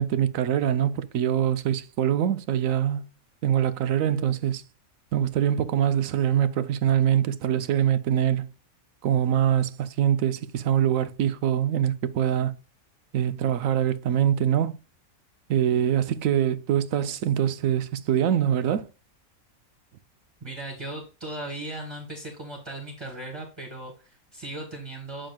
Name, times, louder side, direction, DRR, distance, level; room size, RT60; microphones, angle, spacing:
voice 1, 0.0-3.0 3.4-4.6 5.1-8.5 9.0-12.5 13.1-14.8 15.5-18.9, right 10 dB, 75° right, 1.0 m, -24 dB
voice 2, 20.4-25.3, right 2 dB, 20° right, 1.6 m, -37 dB
8.9 x 6.2 x 2.2 m
omnidirectional pair, 1.5 m